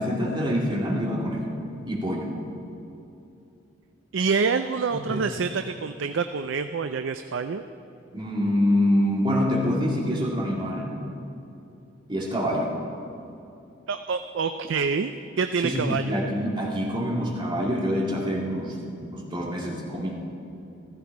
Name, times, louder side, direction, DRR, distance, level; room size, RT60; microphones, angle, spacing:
voice 1, 0.0-1.5 1.8-2.3 4.9-5.3 8.1-11.0 12.1-12.7 15.6-20.1, equal, 25° right, -3 dB, 2.2 m, -26 dB
voice 2, 4.1-7.6 13.9-16.1, right 5 dB, 70° right, 9 dB, 0.4 m, -27 dB
15.5 x 14.5 x 4.7 m, 2.8 s
head